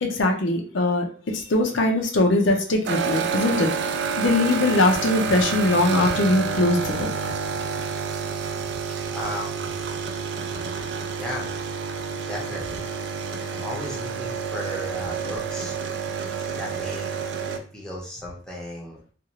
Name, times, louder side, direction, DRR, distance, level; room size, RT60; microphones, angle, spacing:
voice 1, 0.0-3.7 4.2-7.1 16.2-16.3, left 2 dB, 70° left, 2 dB, 0.5 m, -21 dB
sound 1, 2.8-17.6, right 6 dB, 60° right, 0.3 m, -29 dB
voice 2, 9.1-9.7 11.2-11.5 12.3-12.8 13.5-15.8 16.6-17.1 17.4-19.0, left 1 dB, 5° left, -4 dB, 0.7 m, -35 dB
2.5 x 2.4 x 2.9 m, 0.42 s
head